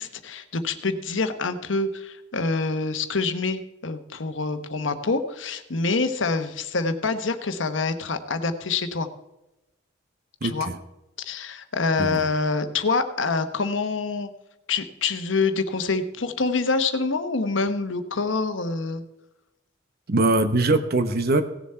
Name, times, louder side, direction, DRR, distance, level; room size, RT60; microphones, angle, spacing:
voice 1, 0.0-9.1 10.4-10.7 11.2-14.3 14.7-19.0, left 4 dB, 75° left, 9 dB, 1.1 m, -26 dB
voice 2, 10.4-10.8 12.0-12.2 20.1-21.4, right 2 dB, 55° right, 9 dB, 0.9 m, -22 dB
17.5 x 7.1 x 4.4 m, 0.95 s
head